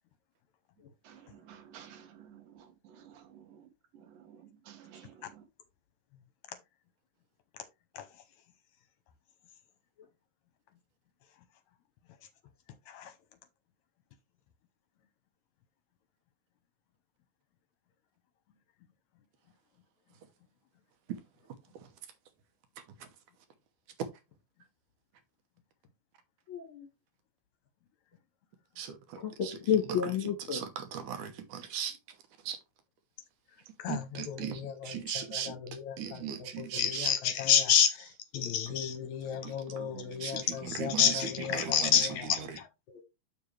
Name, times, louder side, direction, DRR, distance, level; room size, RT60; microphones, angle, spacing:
voice 1, 1.0-5.4, right 9 dB, 90° right, 2.9 m, -54 dB
voice 2, 26.5-26.9 29.2-30.7, left 8 dB, 50° left, 1.9 m, -31 dB
voice 3, 28.8-29.2 29.4-29.5 30.5-30.7 30.9-32.0 32.5-32.6 33.9-35.5 36.0-37.1 39.4-40.4 40.8-41.0 41.5-41.9, right 8 dB, 70° right, 2.3 m, -38 dB
voice 4, 33.8-43.0, left 8 dB, 70° left, 1.9 m, -30 dB
6.8 x 6.8 x 3.2 m
omnidirectional pair, 3.8 m